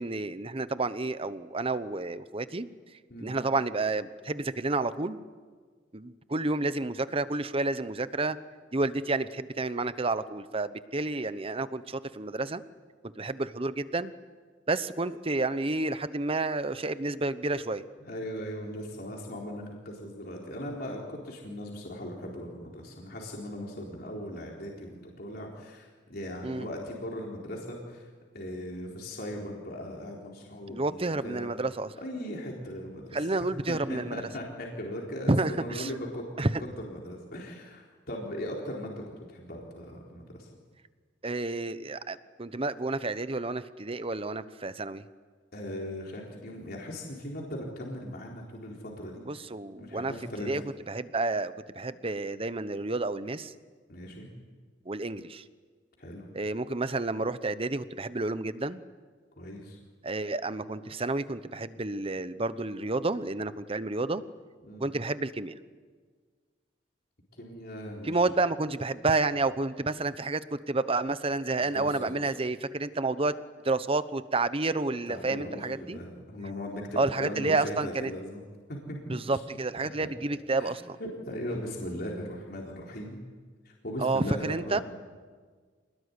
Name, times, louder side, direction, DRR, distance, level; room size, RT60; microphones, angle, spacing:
voice 1, 0.0-2.7 3.2-5.2 5.9-8.4 8.7-12.6 13.0-14.1 14.7-17.9 26.4-26.7 30.7-31.9 33.1-34.2 35.3-35.9 36.4-36.6 41.2-45.0 49.2-50.1 50.4-50.6 50.9-53.5 54.9-55.4 56.3-58.8 60.0-64.2 64.8-65.5 68.0-73.3 73.6-76.0 77.0-78.1 79.1-81.0 84.0-84.8, right 2 dB, 30° right, 13 dB, 1.0 m, -30 dB
voice 2, 18.0-28.1 28.3-31.5 32.0-36.2 36.8-39.0 39.3-40.5 45.5-49.4 49.8-50.5 53.9-54.3 56.0-56.3 59.4-59.8 64.6-64.9 67.3-68.3 71.6-72.1 75.1-78.4 78.7-79.0 79.3-79.4 79.8-80.1 80.5-80.7 81.0-83.2 83.6-84.8, equal, 55° left, -1 dB, 4.1 m, -39 dB
27.0 x 20.0 x 9.8 m, 1.5 s
head